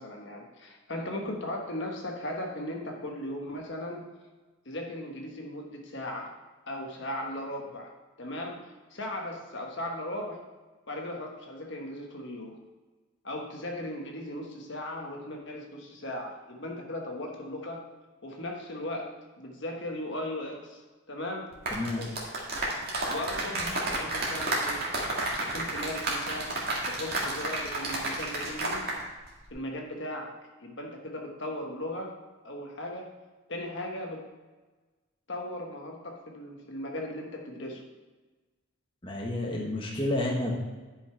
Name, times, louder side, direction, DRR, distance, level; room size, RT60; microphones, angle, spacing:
voice 1, 0.0-4.1 4.6-6.3 6.7-7.9 8.2-8.6 8.9-10.4 10.9-12.5 13.2-17.8 18.2-21.4 22.0-22.1 23.1-24.8 25.4-26.5 26.9-28.9 29.5-30.3 30.6-32.1 32.4-33.1 33.5-34.2 35.3-37.8, left 1 dB, 55° left, 0 dB, 1.3 m, -37 dB
sound 1, 21.5-29.0 29.3-29.5, right 2 dB, 45° right, 2.0 m, -31 dB
voice 2, 21.7-22.1 39.0-40.5, left 1 dB, 25° left, -2 dB, 1.4 m, -30 dB
10.5 x 5.6 x 4.5 m, 1.3 s
head